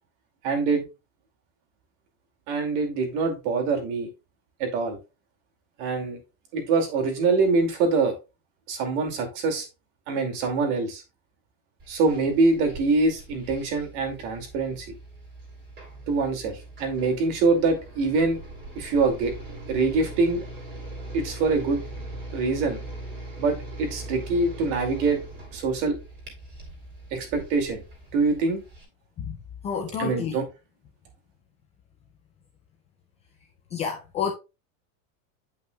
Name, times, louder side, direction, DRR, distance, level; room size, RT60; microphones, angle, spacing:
voice 1, 0.4-0.8 2.5-4.1 4.6-5.0 5.8-6.2 6.5-8.1 8.7-9.7 10.1-11.0 11.9-14.9 16.1-18.4 18.8-19.3 19.7-20.4 21.1-21.8 22.3-22.8 23.4-25.2 25.5-26.0 27.1-27.8 28.1-28.6 30.0-30.4, right 3 dB, 55° right, 2.4 m, -24 dB
sound 1, 11.8-28.8, right 1 dB, 25° right, 2.7 m, -41 dB
voice 2, 29.6-30.4 33.7-34.3, left 7 dB, 15° left, 0.3 m, -29 dB
9.2 x 5.3 x 2.2 m
supercardioid pair, 165°, 41 cm